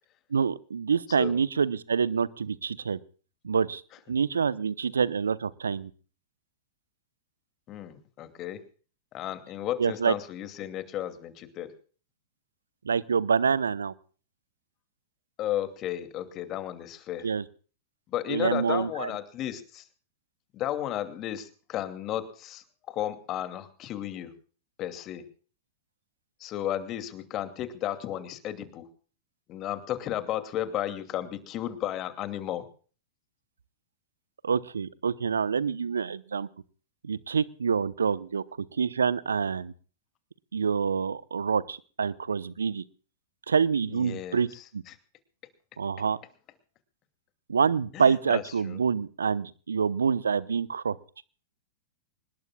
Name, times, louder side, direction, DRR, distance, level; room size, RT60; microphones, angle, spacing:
voice 1, 0.3-3.0 3.4-3.8 4.1-5.9 9.8-10.1 12.8-13.9 17.2-17.4 18.3-19.1 34.4-36.5 37.0-38.4 38.8-39.7 40.5-42.8 43.5-44.5 44.7-44.8 45.8-46.2 47.5-51.0, right 6 dB, 80° right, 19 dB, 0.8 m, -26 dB
voice 2, 7.7-8.6 9.1-11.7 15.4-17.3 18.1-19.8 20.5-24.3 24.8-25.2 26.4-28.8 29.5-32.6 43.9-44.9 47.9-48.8, left 12 dB, 35° left, 9 dB, 2.6 m, -34 dB
25.0 x 20.5 x 2.4 m, 0.41 s
figure-of-eight pair, 100°, 0 cm